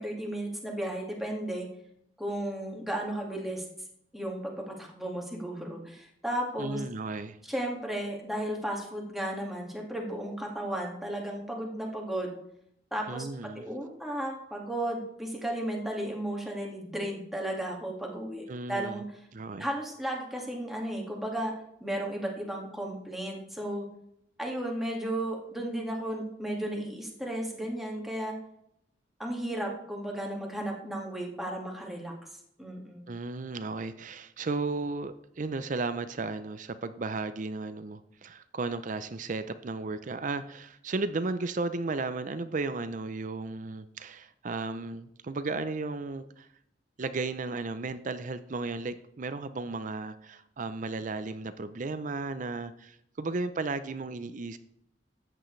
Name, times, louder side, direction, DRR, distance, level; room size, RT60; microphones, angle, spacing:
voice 1, 0.0-1.7 2.2-3.6 4.1-6.8 7.5-12.4 12.9-13.3 13.5-19.1 19.6-21.5 21.8-23.8 24.4-28.4 29.2-32.1 32.6-33.1, right 1 dB, ahead, -1 dB, 1.9 m, -34 dB
voice 2, 6.6-7.4 13.1-13.7 18.5-19.0 19.3-19.7 33.1-46.5 47.0-54.6, right 3 dB, 45° right, 12 dB, 0.5 m, -34 dB
13.5 x 9.1 x 3.2 m, 0.76 s
head